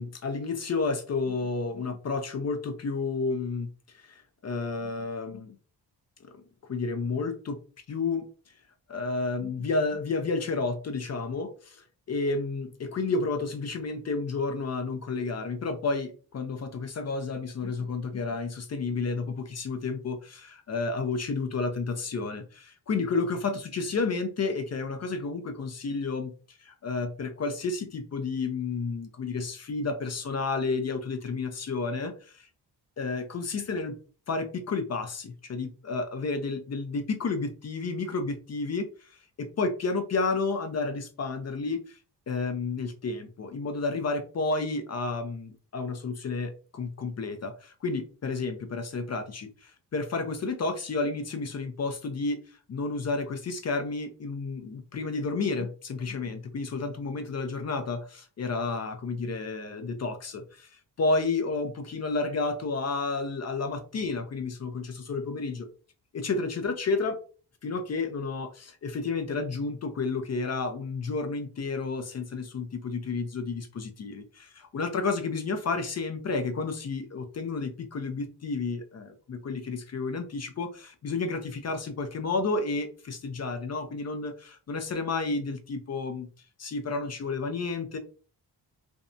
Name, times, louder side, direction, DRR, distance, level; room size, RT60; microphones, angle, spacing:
voice 1, 0.0-3.7 3.9-5.6 6.2-6.3 6.7-7.6 7.9-8.3 8.9-32.5 33.0-33.9 34.3-42.0 42.3-65.7 66.1-67.2 67.6-86.3 86.6-88.0, left 3 dB, 40° left, 8 dB, 0.5 m, -31 dB
2.6 x 2.1 x 2.5 m, 0.38 s
cardioid pair, 65°, 43 cm